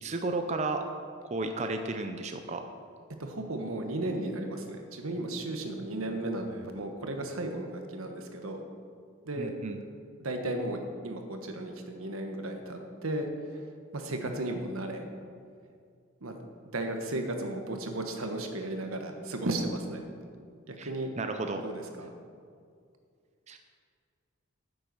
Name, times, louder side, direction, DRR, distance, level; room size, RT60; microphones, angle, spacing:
voice 1, 0.0-0.8 1.3-2.6 9.4-9.8 20.8-20.9 21.2-21.6 23.5-23.6, right 3 dB, 35° right, 6 dB, 0.5 m, -33 dB
voice 2, 3.2-8.7 9.2-9.5 10.2-13.6 13.9-15.0 16.2-16.4 16.7-20.1 20.7-21.1 21.6-22.1, right 1 dB, 90° right, 4 dB, 1.3 m, -35 dB
9.4 x 7.8 x 6.2 m, 2.2 s
head